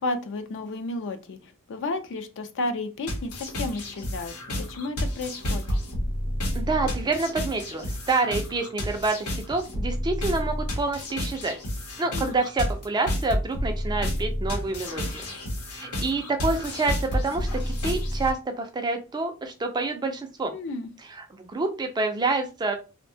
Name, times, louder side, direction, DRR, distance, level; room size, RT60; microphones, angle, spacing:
voice 1, 0.0-5.6 12.1-12.4 20.5-20.9, left 2 dB, 55° left, 8 dB, 0.4 m, -32 dB
sound 1, 3.1-18.3, equal, 90° left, 0.9 m, -30 dB
voice 2, 6.5-11.6 12.0-15.2 15.7-20.5 21.1-22.7, right 3 dB, 20° right, 5 dB, 0.3 m, -28 dB
2.6 x 2.1 x 2.6 m, 0.30 s
head